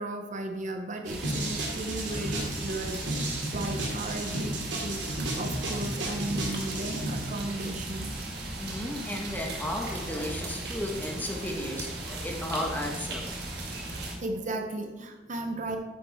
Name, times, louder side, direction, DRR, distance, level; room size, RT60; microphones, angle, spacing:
voice 1, 0.0-8.2 13.9-15.8, right 2 dB, 45° right, 5 dB, 0.7 m, -35 dB
sound 1, 1.0-14.1, right 2 dB, 60° right, 1.9 m, -37 dB
sound 2, 1.2-7.1, right 1 dB, 80° right, 2.6 m, -33 dB
voice 2, 8.6-13.3 13.6-14.2, left 1 dB, 10° left, 1 dB, 1.3 m, -34 dB
9.3 x 8.9 x 3.5 m, 1.2 s
head